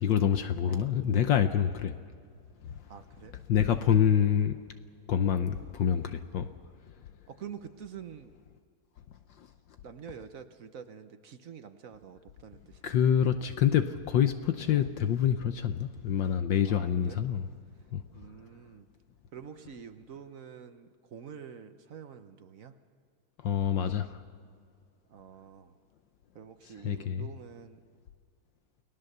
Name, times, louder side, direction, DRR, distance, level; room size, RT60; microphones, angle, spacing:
voice 1, 0.0-1.9 3.5-4.6 5.1-6.5 12.8-17.4 17.9-18.0 23.4-24.2 26.8-27.3, left 9 dB, 70° left, 9 dB, 1.4 m, -26 dB
voice 2, 2.9-3.4 7.3-8.3 9.8-12.9 14.7-15.1 16.6-17.2 18.1-18.9 19.3-22.7 25.1-25.7 26.3-27.8, right 7 dB, 55° right, 9 dB, 1.0 m, -47 dB
29.5 x 19.0 x 6.7 m, 2.2 s
omnidirectional pair, 2.3 m